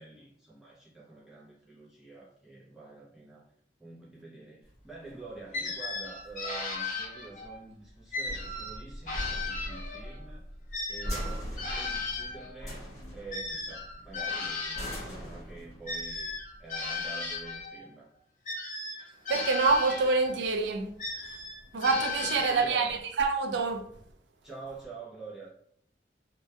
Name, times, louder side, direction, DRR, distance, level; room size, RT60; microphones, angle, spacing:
voice 1, 0.0-3.4 3.8-10.5 10.9-18.1 22.2-22.9 24.4-25.5, right 3 dB, 5° right, 0.4 m, -47 dB
sound 1, 4.7-17.7, equal, 20° left, 0.9 m, -41 dB
sound 2, 5.5-7.6 8.1-10.2 10.7-15.1 15.9-17.8 18.4-20.4 21.0-23.0, left 3 dB, 45° left, 0.6 m, -36 dB
voice 2, 19.3-21.4 21.7-23.9, right 4 dB, 75° right, 0.4 m, -27 dB
2.1 x 2.1 x 2.7 m
head